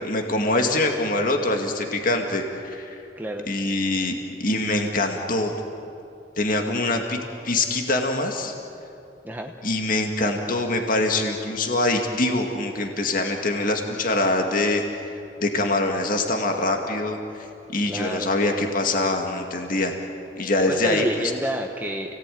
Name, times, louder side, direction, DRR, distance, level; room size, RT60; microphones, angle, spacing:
voice 1, 0.0-3.0 3.5-4.1 4.4-5.5 6.4-7.2 7.4-8.5 9.6-14.8 15.4-19.9 20.4-21.3, left 2 dB, 50° left, 3 dB, 2.2 m, -24 dB
voice 2, 3.2-3.5 9.2-9.5 17.9-18.3 20.7-22.1, equal, 10° right, 2 dB, 1.1 m, -29 dB
29.5 x 18.5 x 9.3 m, 2.7 s
head